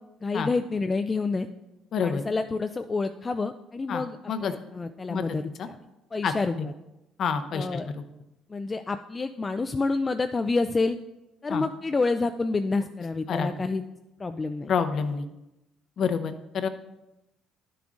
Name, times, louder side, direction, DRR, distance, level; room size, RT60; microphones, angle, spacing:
voice 1, 0.2-1.5 2.0-5.8 6.1-6.6 7.5-7.9 8.5-11.0 11.4-13.8 14.2-14.7, left 3 dB, 25° left, 8 dB, 0.3 m, -28 dB
voice 2, 1.9-2.2 3.9-4.5 5.1-5.3 5.6-5.7 6.2-6.3 7.2-7.8 11.5-11.6 13.3-13.5 14.7-15.3 16.0-16.7, left 6 dB, 55° left, 9 dB, 0.7 m, -28 dB
11.5 x 6.9 x 2.5 m, 0.96 s
cardioid pair, 100°, 0 cm